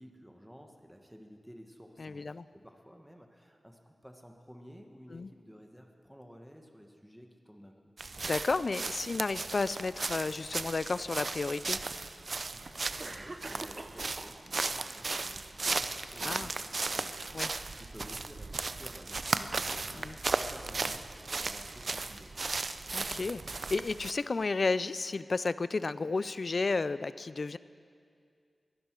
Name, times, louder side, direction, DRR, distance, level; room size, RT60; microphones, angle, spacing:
voice 1, 0.0-7.9 12.5-22.4, equal, 5° right, 3 dB, 1.5 m, -53 dB
voice 2, 2.0-2.5 5.1-5.3 8.2-11.8 16.2-16.5 17.3-17.5 19.9-20.2 22.9-27.6, left 3 dB, 65° left, 16 dB, 0.4 m, -32 dB
sound 1, 8.0-24.1, right 3 dB, 60° right, 0.6 m, -36 dB
Cough, 13.0-14.4 14.8-15.4, right 2 dB, 40° right, 0.9 m, -45 dB
21.5 x 12.0 x 4.8 m, 2.3 s
cardioid pair, 45°, 0 cm